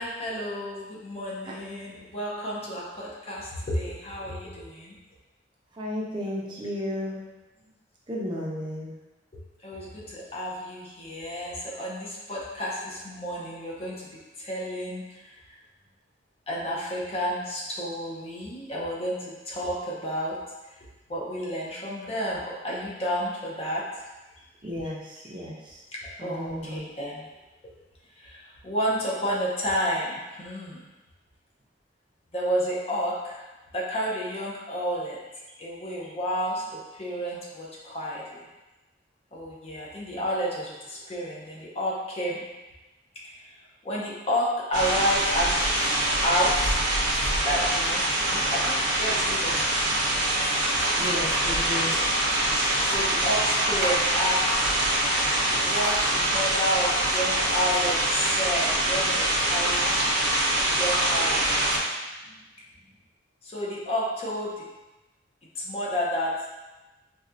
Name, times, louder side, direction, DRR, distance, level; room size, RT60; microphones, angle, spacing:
voice 1, 0.0-4.9 9.6-15.3 16.5-20.4 20.6-20.7 21.1-23.8 25.9-27.3 28.2-30.9 32.3-33.5 33.7-35.2 35.6-38.4 39.3-42.5 43.2-43.6 43.8-45.9 46.2-46.9 47.4-48.0 48.3-50.0 52.8-54.7 55.5-60.0 60.6-61.4 63.4-64.6 65.5-66.4, equal, 35° left, -5 dB, 0.6 m, -31 dB
voice 2, 5.8-7.2 8.1-8.9 24.6-25.0 25.3-25.6 26.2-26.8 51.0-51.9, equal, 25° right, -4 dB, 0.5 m, -33 dB
sound 1, 44.7-61.8, right 1 dB, 75° right, 0.7 m, -24 dB
4.1 x 2.2 x 2.5 m, 1.1 s
head